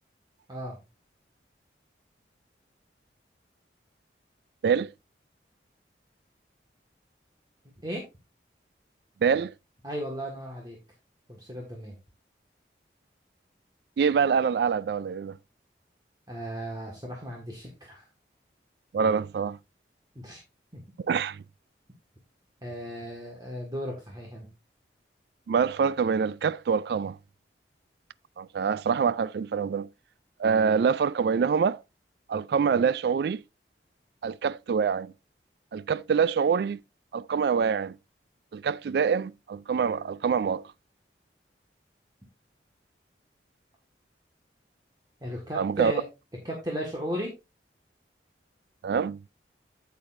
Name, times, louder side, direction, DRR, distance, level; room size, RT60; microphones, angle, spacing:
voice 1, 9.2-9.5 14.0-15.4 18.9-19.6 21.1-21.4 25.5-27.2 28.4-29.9 30.4-31.8 32.3-33.4 34.2-35.1 35.7-36.8 37.1-38.0 38.5-40.6 45.5-45.9 48.8-49.2, right 6 dB, 60° right, 0.3 m, -25 dB
voice 2, 9.8-10.8 11.3-11.9 16.3-18.1 20.2-20.4 20.7-20.8 22.6-24.5 45.2-46.0 46.4-47.3, equal, 20° right, 1.6 m, -35 dB
8.7 x 8.3 x 2.6 m
head